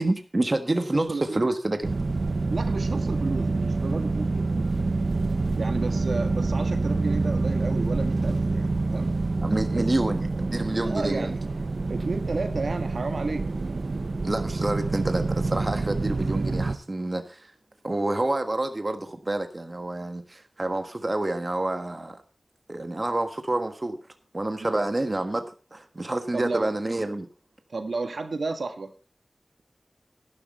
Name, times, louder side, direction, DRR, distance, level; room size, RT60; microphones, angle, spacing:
voice 1, 0.0-1.9 9.0-9.1 9.4-11.3 14.2-17.5 17.8-22.2 22.7-24.0 24.3-27.3, right 2 dB, 35° right, 7 dB, 1.5 m, -28 dB
voice 2, 0.9-1.5 2.5-4.7 5.6-9.1 9.7-9.9 10.9-11.4 11.9-13.5 24.6-24.7 26.3-26.7 27.7-28.9, right 3 dB, 80° right, 7 dB, 1.7 m, -32 dB
sound 1, 1.8-16.8, right 3 dB, 65° right, 1.0 m, -27 dB
12.0 x 11.5 x 4.2 m, 0.33 s
wide cardioid pair, 70°, 0 cm